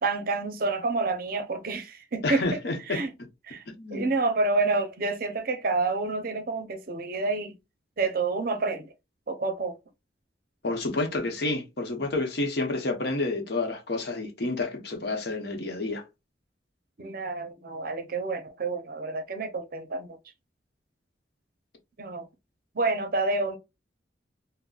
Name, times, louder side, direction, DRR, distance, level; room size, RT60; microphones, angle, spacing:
voice 1, 0.0-2.6 2.9-3.1 3.4-3.7 3.9-7.6 8.0-8.9 9.3-9.8 17.0-20.2 22.0-22.3 22.7-23.6, right 3 dB, 55° right, 0.6 m, -28 dB
voice 2, 2.2-3.0 3.7-4.1 10.6-16.0, left 2 dB, 65° left, 0.8 m, -29 dB
3.9 x 2.0 x 2.3 m
head